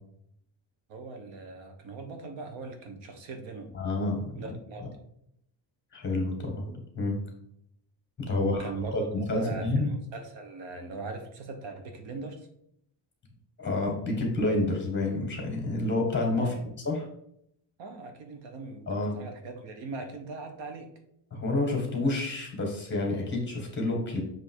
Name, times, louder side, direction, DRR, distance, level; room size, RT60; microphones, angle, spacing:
voice 1, 0.9-3.7 4.4-5.0 8.3-12.5 16.4-16.7 17.8-20.9, right 3 dB, 80° right, 5 dB, 1.3 m, -40 dB
voice 2, 3.7-4.4 4.8-4.9 5.9-7.2 8.3-8.7 8.9-9.9 13.6-16.5 16.9-17.1 18.9-19.2 21.3-24.2, left 2 dB, 25° left, 1 dB, 1.7 m, -29 dB
7.0 x 3.1 x 4.6 m, 0.73 s
cardioid pair, 180°, 44 cm